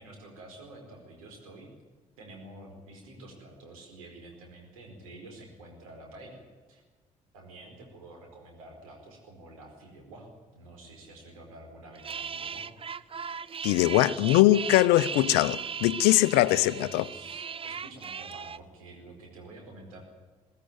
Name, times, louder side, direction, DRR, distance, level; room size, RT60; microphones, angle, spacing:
voice 1, 0.0-1.7 2.2-6.4 6.7-6.8 7.3-12.7 16.4-20.0, right 2 dB, 75° right, 4.6 m, -48 dB
sound 1, 11.9-18.6, right 6 dB, 30° right, 0.7 m, -38 dB
voice 2, 13.6-17.0, left 16 dB, 65° left, 0.6 m, -22 dB
22.0 x 15.5 x 9.4 m
figure-of-eight pair, 45°, 18 cm